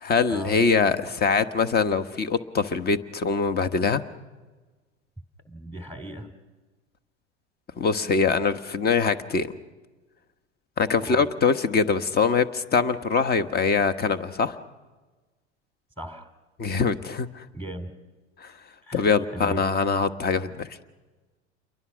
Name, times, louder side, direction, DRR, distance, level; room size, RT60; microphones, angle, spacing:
voice 1, 0.0-4.0 7.8-9.5 10.8-14.6 16.6-17.4 18.4-18.5 18.9-20.7, left 5 dB, 25° left, 11 dB, 1.3 m, -23 dB
voice 2, 5.5-6.3 11.1-11.3 16.0-16.3 17.5-17.9 18.8-19.1 19.3-19.6, right 1 dB, 5° left, 6 dB, 2.7 m, -37 dB
29.5 x 23.0 x 6.3 m, 1.3 s
hypercardioid pair, 85°, 34 cm